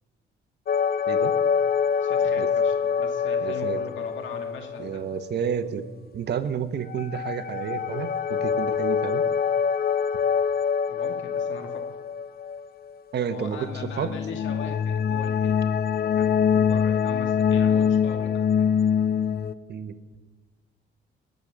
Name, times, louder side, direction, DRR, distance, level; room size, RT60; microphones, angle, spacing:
sound 1, 0.7-4.9 5.1-5.2 6.9-12.6 13.7-19.5, left 7 dB, 50° left, 0.7 m, -24 dB
voice 1, 2.0-5.1 10.9-11.9 13.3-15.6 16.0-18.7, left 4 dB, 70° left, 4 dB, 2.3 m, -40 dB
voice 2, 3.4-3.8 4.8-5.8 6.1-9.2 13.1-13.6 14.0-14.1 19.7-19.9, right 7 dB, 60° right, 10 dB, 1.1 m, -30 dB
19.5 x 6.6 x 7.0 m, 1.4 s
cardioid pair, 90°, 20 cm